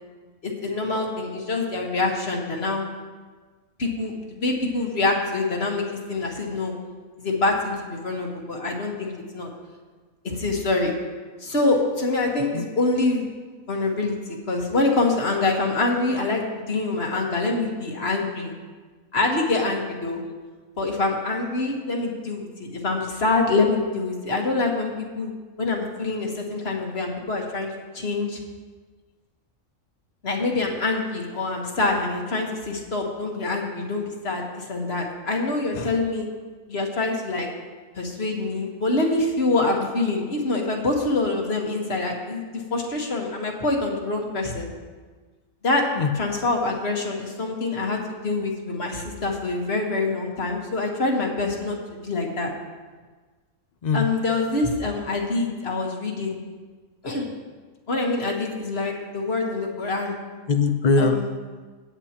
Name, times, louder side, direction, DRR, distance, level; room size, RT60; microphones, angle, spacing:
voice 1, 0.4-2.9 3.8-6.7 7.2-9.5 10.2-10.9 11.4-13.3 13.7-18.5 19.1-20.2 20.8-28.4 30.2-36.3 36.7-37.5 37.9-44.7 45.6-45.9 46.2-52.5 53.9-56.4 57.0-57.3 57.9-60.2 61.0-61.3, left 3 dB, 45° left, 1 dB, 1.6 m, -25 dB
voice 2, 60.5-61.4, left 4 dB, 80° left, 8 dB, 0.4 m, -22 dB
17.0 x 8.7 x 2.9 m, 1.4 s
omnidirectional pair, 1.6 m